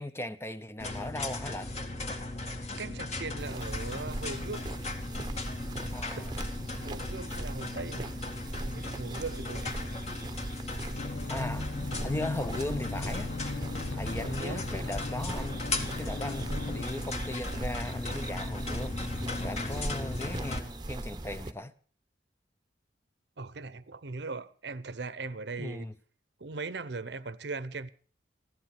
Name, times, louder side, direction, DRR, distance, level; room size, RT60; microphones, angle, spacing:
voice 1, 0.0-1.7 5.9-6.3 11.3-11.7 12.0-13.6 14.0-21.7 25.6-25.9, left 1 dB, 15° left, 0.7 m, -38 dB
sound 1, 0.8-20.6, left 2 dB, 40° left, 2.0 m, -37 dB
voice 2, 2.8-4.7 6.2-6.3 6.7-8.1 8.6-10.0 14.2-14.6 23.4-25.9 26.4-27.9, right 3 dB, 65° right, 0.8 m, -39 dB
sound 2, 3.4-21.5, right 1 dB, 25° right, 0.9 m, -40 dB
sound 3, 11.0-16.8, left 3 dB, 85° left, 1.1 m, -38 dB
15.5 x 13.5 x 6.0 m
head